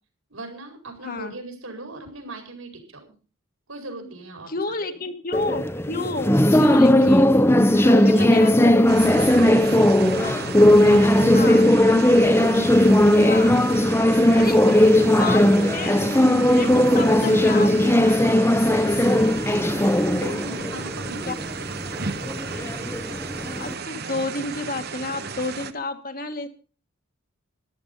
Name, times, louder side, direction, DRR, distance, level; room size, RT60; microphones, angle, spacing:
voice 1, 0.3-3.1 3.7-4.5 7.5-8.7 9.0-10.3 10.7-13.1 14.2-15.6 16.0-17.7 20.1-21.5, right 2 dB, 75° right, 3 dB, 5.0 m, -38 dB
voice 2, 1.0-1.3 4.5-7.4 7.9-9.1 10.2-10.4 11.3-11.7 13.2-13.6 14.3-14.6 14.9-16.0 16.5-18.2 19.0-19.3 21.3-21.4 23.6-26.5, left 3 dB, 40° left, 7 dB, 1.4 m, -31 dB
sound 1, 5.3-23.7, left 1 dB, 10° left, 0.7 m, -18 dB
sound 2, 8.9-25.7, right 5 dB, 45° right, 0.9 m, -34 dB
14.0 x 11.5 x 5.4 m, 0.37 s
head